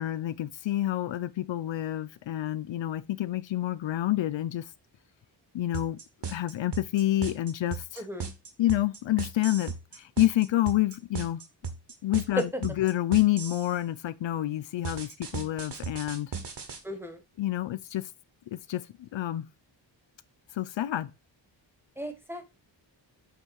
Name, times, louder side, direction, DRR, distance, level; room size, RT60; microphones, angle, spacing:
voice 1, 0.0-4.7 5.5-6.0 6.3-8.0 8.6-11.4 12.0-16.3 17.4-18.1 18.5-19.5 20.5-21.1, left 14 dB, 75° left, 0.5 m, -28 dB
sound 1, 5.7-13.7 14.8-16.8, right 5 dB, 65° right, 1.6 m, -36 dB
voice 2, 8.0-8.3 12.4-12.5 16.8-17.2 22.0-22.5, equal, 5° right, 1.3 m, -33 dB
8.0 x 3.6 x 4.7 m
wide cardioid pair, 105°, 45 cm